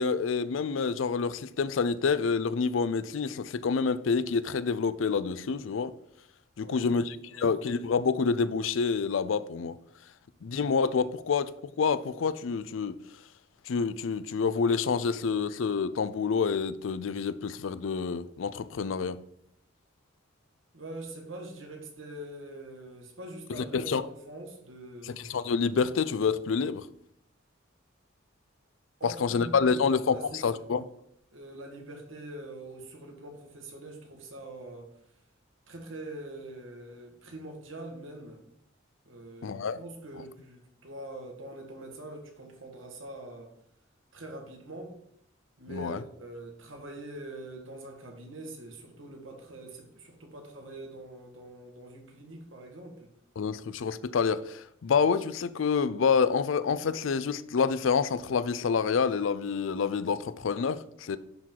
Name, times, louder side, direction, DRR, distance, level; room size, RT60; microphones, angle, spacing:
voice 1, 0.0-5.9 6.6-9.8 10.4-11.5 11.8-13.0 13.7-19.2 23.5-24.0 25.0-26.9 29.0-30.8 39.4-39.8 45.7-46.0 53.4-61.2, left 5 dB, 70° left, 0.4 m, -28 dB
voice 2, 6.6-7.5 20.7-25.2 29.0-30.6 31.3-34.9 35.7-38.4 39.1-43.5 44.1-45.0 45.6-53.1, right 1 dB, 70° right, 1.8 m, -44 dB
10.5 x 3.8 x 4.6 m
head